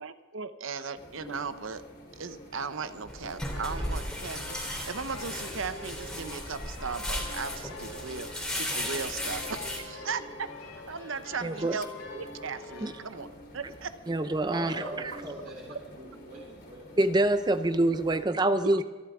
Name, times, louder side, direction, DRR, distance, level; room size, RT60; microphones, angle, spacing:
voice 1, 0.0-1.8 2.2-10.5 10.7-11.9 12.1-13.3 13.5-13.9 18.7-18.8, right 5 dB, 70° right, 11 dB, 0.8 m, -37 dB
sound 1, 1.0-18.2, equal, 50° left, 3.3 m, -49 dB
sound 2, 3.1-9.8, left 1 dB, 5° left, 2.7 m, -36 dB
sound 3, 3.4-13.0, left 3 dB, 85° left, 3.3 m, -45 dB
voice 2, 11.4-11.8 12.8-12.9 14.1-14.8 17.0-18.8, right 1 dB, 20° right, 11 dB, 0.5 m, -25 dB
voice 3, 14.5-16.9, right 1 dB, 40° right, -4 dB, 3.4 m, -41 dB
26.5 x 11.5 x 3.6 m, 1.4 s
head